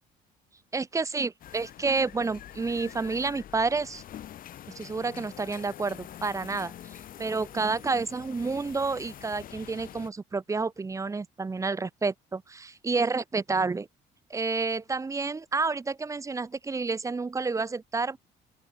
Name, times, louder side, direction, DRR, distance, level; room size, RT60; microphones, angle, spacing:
voice 1, 0.7-4.0 4.7-6.7 7.2-13.9 14.3-18.2, right 4 dB, 20° right, 0.8 m, -29 dB
sound 1, 1.4-10.1, left 11 dB, 55° left, 1.6 m, -45 dB
open air
cardioid pair, 110°, 17 cm